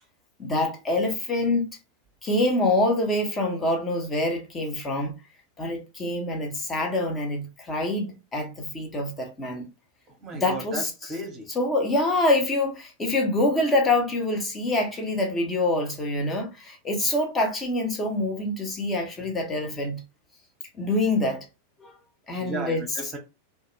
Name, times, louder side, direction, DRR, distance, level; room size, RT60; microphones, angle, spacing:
voice 1, 0.4-1.7 2.2-5.1 5.6-9.7 10.3-11.1 11.5-20.0 20.7-21.4 21.8-21.9 22.3-23.0, left 2 dB, 20° left, 0.8 m, -26 dB
voice 2, 10.2-10.8 11.1-11.5 22.4-23.2, right 1 dB, 25° right, 0.9 m, -34 dB
2.3 x 2.2 x 3.0 m
figure-of-eight pair, 90°, 0 cm